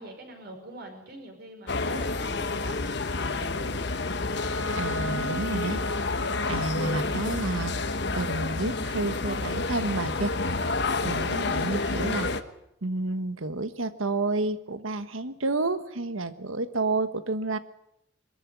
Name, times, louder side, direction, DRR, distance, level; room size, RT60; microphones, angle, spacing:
voice 1, 0.0-3.9, right 1 dB, 50° right, 3 dB, 5.2 m, -44 dB
sound 1, 1.7-12.4, left 3 dB, 55° left, 1.2 m, -29 dB
Bowed string instrument, 4.3-9.9, equal, 80° left, 1.2 m, -38 dB
voice 2, 4.8-5.8 6.5-7.7 8.1-10.3 10.7-10.8 11.0-12.3 12.8-17.6, right 2 dB, 90° right, 11 dB, 1.4 m, -30 dB
22.5 x 13.5 x 9.7 m, 0.81 s
head